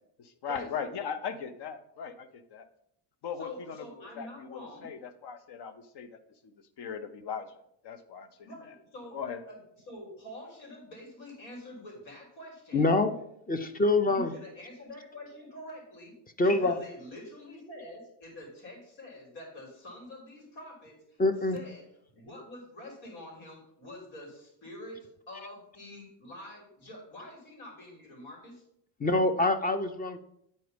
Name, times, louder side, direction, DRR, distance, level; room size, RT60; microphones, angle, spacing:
voice 1, 0.2-2.7 3.2-6.2 6.4-7.5 7.8-8.7 9.1-9.4, left 7 dB, 60° left, 11 dB, 0.9 m, -39 dB
voice 2, 3.4-4.9 8.4-9.2 9.9-12.9 13.8-21.2 21.5-21.8 22.1-28.6, left 1 dB, 80° left, -1 dB, 3.4 m, -46 dB
voice 3, 12.7-13.1 13.5-14.3 16.4-16.8 21.2-21.6 29.0-30.2, left 2 dB, 20° left, 10 dB, 0.6 m, -25 dB
9.3 x 4.3 x 5.1 m, 0.74 s
cardioid pair, 115°, 46 cm